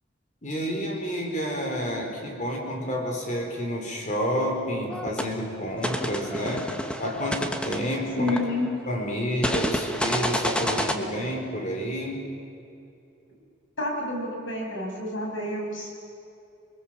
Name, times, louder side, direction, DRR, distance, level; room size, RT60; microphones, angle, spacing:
voice 1, 0.4-6.7 7.0-8.4 8.9-12.2, equal, 40° left, 2 dB, 4.3 m, -29 dB
sound 1, 4.9-5.3 5.8-8.8 9.4-10.9, equal, 5° left, 1.2 m, -29 dB
voice 2, 8.2-8.7 13.8-15.9, left 2 dB, 70° left, -1 dB, 6.6 m, -29 dB
27.5 x 21.0 x 7.6 m, 2.6 s
head